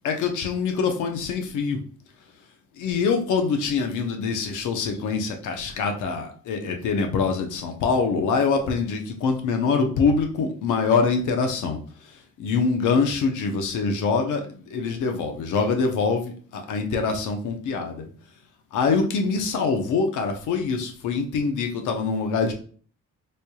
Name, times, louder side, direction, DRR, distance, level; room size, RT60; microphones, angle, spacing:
voice 1, 0.0-1.8 2.8-11.8 12.4-18.1 18.7-22.5, left 5 dB, 80° left, 4 dB, 0.8 m, -24 dB
4.2 x 3.3 x 2.3 m, 0.43 s
cardioid pair, 90°, 30 cm